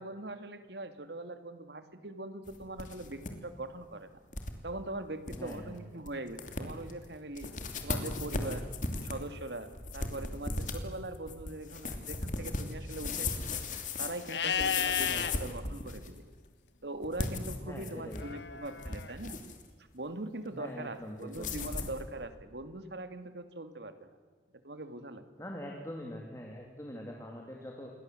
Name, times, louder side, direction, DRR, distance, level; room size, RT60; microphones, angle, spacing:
voice 1, 0.0-4.1 4.6-7.5 7.8-8.7 9.0-13.6 14.0-16.2 16.8-19.4 19.8-24.1 24.6-25.3, right 2 dB, 75° right, 9 dB, 2.4 m, -41 dB
sound 1, 2.5-3.3 3.6-3.7 4.3-4.5 4.9-5.0 5.3-5.6 6.1-6.2 6.4-6.9 7.3-16.2 17.0-18.3 18.6-19.6 21.3-22.0, left 3 dB, 45° left, 2.9 m, -37 dB
voice 2, 5.3-5.8 15.1-15.3 17.6-18.2 20.5-21.5 25.4-27.9, equal, 15° left, 0 dB, 3.0 m, -43 dB
Livestock farm animals working animals, 14.3-15.3 18.2-19.1, left 7 dB, 80° left, 1.3 m, -33 dB
28.0 x 22.0 x 7.8 m, 1.5 s
head